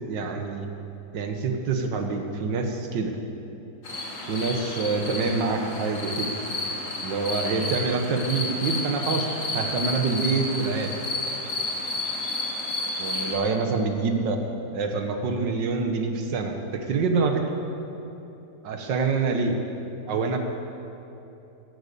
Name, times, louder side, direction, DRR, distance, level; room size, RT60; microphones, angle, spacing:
voice 1, 0.1-0.7 1.1-3.2 4.3-6.3 7.0-9.3 9.5-10.9 13.0-14.4 14.7-17.4 18.6-19.6 20.1-20.4, right 4 dB, 90° right, 5 dB, 1.9 m, -26 dB
sound 1, 3.8-13.3, left 2 dB, 45° left, 2.4 m, -31 dB
13.5 x 10.5 x 6.9 m, 2.9 s
omnidirectional pair, 1.9 m